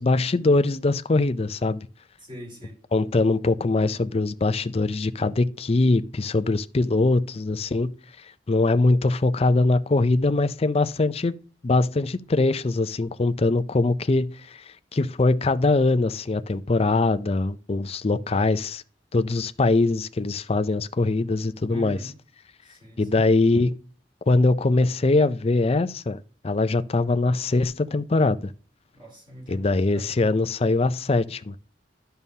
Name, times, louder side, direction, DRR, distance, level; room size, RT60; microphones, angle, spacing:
voice 1, 0.0-1.8 2.9-7.9 8.5-11.3 11.6-14.3 14.9-18.8 19.1-22.0 23.0-23.7 24.3-28.4 29.5-31.6, left 2 dB, 35° left, 0.5 m, -22 dB
voice 2, 2.2-2.7 21.7-22.1 22.6-23.2 28.9-30.1, equal, 30° right, 4.2 m, -42 dB
11.0 x 6.8 x 2.8 m
head